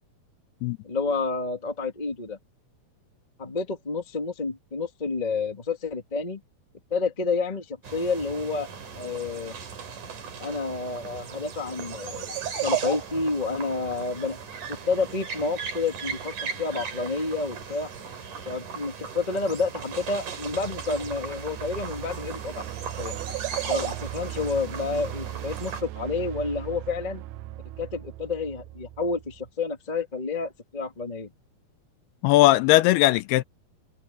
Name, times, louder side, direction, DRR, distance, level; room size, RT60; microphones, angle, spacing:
voice 1, 0.8-2.4 3.4-6.4 6.9-8.7 8.9-9.6 10.4-14.4 14.7-17.9 18.4-22.6 23.0-23.2 23.7-27.2 27.8-31.3, left 4 dB, 20° left, 1.1 m, -29 dB
sound 1, 7.8-25.8, right 7 dB, 50° right, 4.4 m, -36 dB
sound 2, 19.4-29.5, right 14 dB, 90° right, 2.8 m, -40 dB
voice 2, 32.2-33.4, left 16 dB, 80° left, 2.5 m, -18 dB
omnidirectional pair, 4.7 m